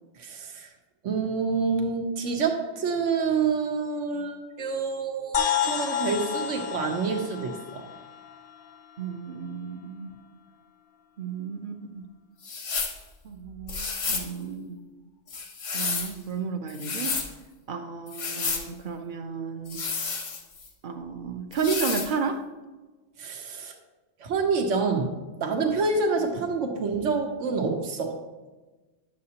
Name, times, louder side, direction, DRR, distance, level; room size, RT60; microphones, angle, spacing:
voice 1, 0.2-0.7 1.0-7.8 23.2-23.7 24.2-25.1 25.4-28.2, right 4 dB, 85° right, 3 dB, 1.2 m, -27 dB
sound 1, 5.3-9.1, left 9 dB, 60° left, 0.7 m, -30 dB
voice 2, 9.0-10.1 11.2-12.1 13.2-14.8 15.7-17.2 17.7-19.8 20.8-22.4, right 5 dB, 50° right, 7 dB, 0.7 m, -32 dB
sound 2, 12.4-13.0 13.7-14.3 15.3-16.1 16.7-17.3 18.1-18.7 19.7-20.7 21.5-22.1, left 4 dB, 85° left, 1.4 m, -31 dB
10.5 x 7.4 x 2.8 m, 1.2 s
omnidirectional pair, 1.2 m